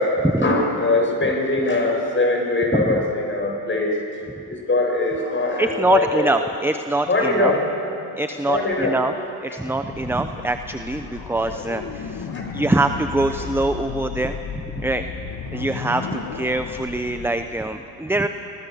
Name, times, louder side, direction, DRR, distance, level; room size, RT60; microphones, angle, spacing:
voice 1, 0.0-4.0 4.5-6.3 7.1-7.6 8.5-8.9 11.0-11.1 12.3-12.5 13.4-13.5, left 2 dB, 25° left, 0 dB, 7.8 m, -22 dB
voice 2, 2.7-3.0 5.6-7.5 8.2-9.1 9.4-14.4 14.8-15.0 15.5-18.3, right 2 dB, 5° right, 8 dB, 0.9 m, -24 dB
sound 1, 9.8-17.5, left 6 dB, 50° left, 2.0 m, -34 dB
27.0 x 20.0 x 7.1 m, 2.8 s
supercardioid pair, 75°, 45 cm